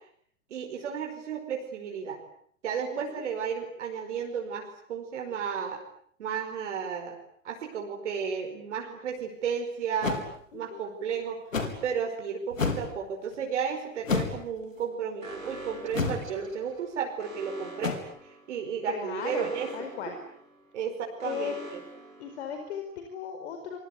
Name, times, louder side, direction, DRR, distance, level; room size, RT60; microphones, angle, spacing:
voice 1, 0.5-2.2 2.6-5.8 6.2-7.2 7.4-10.2 10.5-11.4 11.8-18.0 18.2-19.7 20.1-20.2 20.7-21.8, right 7 dB, 60° right, 2 dB, 5.1 m, -33 dB
voice 2, 2.9-3.2 10.5-10.8 18.9-20.2 21.2-21.8 22.2-23.8, left 7 dB, 55° left, 6 dB, 4.9 m, -37 dB
sound 1, 10.0-10.2 11.5-11.8 12.5-12.9 14.0-14.4 15.9-16.3 17.8-17.9, left 4 dB, 75° left, 4.7 m, -28 dB
Alarm, 15.2-23.0, right 1 dB, 85° right, 6.5 m, -46 dB
27.5 x 24.0 x 8.4 m, 0.64 s
figure-of-eight pair, 95°, 39 cm